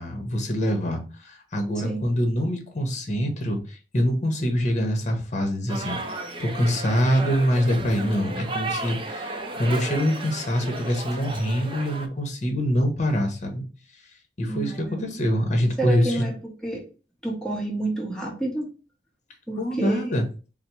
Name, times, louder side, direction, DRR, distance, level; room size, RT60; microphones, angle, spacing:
voice 1, 0.0-13.6 14.4-16.3 19.6-20.2, equal, 40° left, 4 dB, 0.9 m, -25 dB
sound 1, 5.7-12.1, right 2 dB, 30° right, 0.5 m, -34 dB
voice 2, 14.5-15.0 15.8-16.8 17.2-18.7 19.5-20.2, right 2 dB, 5° left, -2 dB, 0.9 m, -29 dB
4.2 x 2.0 x 4.4 m, 0.35 s
head